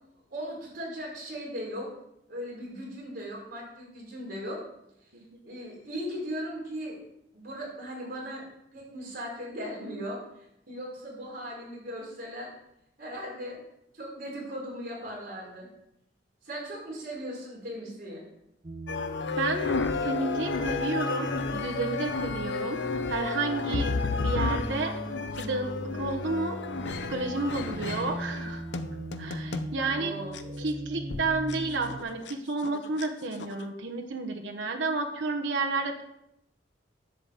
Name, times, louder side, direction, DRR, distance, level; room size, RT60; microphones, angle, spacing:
voice 1, 0.3-1.9 2.3-4.6 5.4-7.0 7.3-8.4 8.7-10.2 10.7-12.5 13.0-13.6 13.9-15.7 16.4-18.2 29.8-30.7, equal, 50° right, -3 dB, 4.9 m, -38 dB
sound 1, 18.6-32.0, right 1 dB, 30° right, 0.7 m, -39 dB
sound 2, 18.9-29.8 30.3-30.4 31.1-31.2 31.5-31.6 31.9-32.3 32.6-33.1 33.4-33.7, left 4 dB, 70° left, 0.7 m, -32 dB
voice 2, 19.4-22.8 23.1-25.0 25.4-26.6 27.1-28.6 29.2-30.1 30.6-36.0, right 3 dB, 80° right, 2 dB, 1.1 m, -31 dB
10.5 x 5.3 x 7.7 m, 0.80 s
head